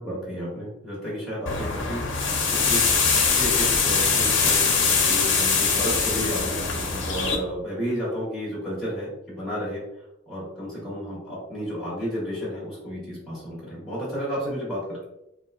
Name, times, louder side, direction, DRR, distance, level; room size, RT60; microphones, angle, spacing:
voice 1, 0.0-2.0 2.5-2.9 3.3-9.8 10.3-15.0, equal, ahead, -10 dB, 1.1 m, -32 dB
sound 1, 1.5-7.4, left 5 dB, 75° left, 0.7 m, -22 dB
3.8 x 2.4 x 2.4 m, 0.88 s
head